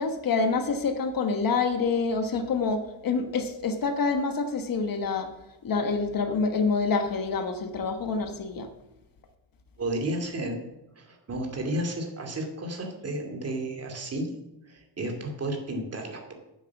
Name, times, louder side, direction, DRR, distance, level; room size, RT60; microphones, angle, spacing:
voice 1, 0.0-5.3 5.6-8.7, left 4 dB, 45° left, 7 dB, 1.3 m, -27 dB
voice 2, 9.8-10.6 11.0-14.3 14.7-16.3, right 1 dB, 35° right, 3 dB, 2.5 m, -32 dB
9.6 x 7.9 x 7.0 m, 0.97 s
cardioid pair, 135°, 45 cm